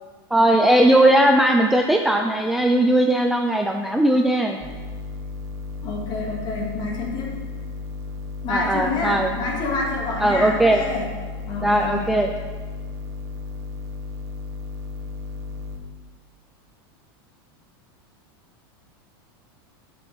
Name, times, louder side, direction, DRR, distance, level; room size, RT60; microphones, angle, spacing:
voice 1, 0.3-4.6 8.5-9.3 10.2-10.8 11.6-12.3, right 1 dB, ahead, 3 dB, 0.3 m, -18 dB
sound 1, 4.6-15.8, left 3 dB, 20° right, 1.0 m, -34 dB
voice 2, 5.8-7.4 8.4-11.1 11.5-12.1, left 3 dB, 35° left, -1 dB, 2.0 m, -28 dB
8.7 x 6.0 x 4.8 m, 1.5 s
supercardioid pair, 140°, 13 cm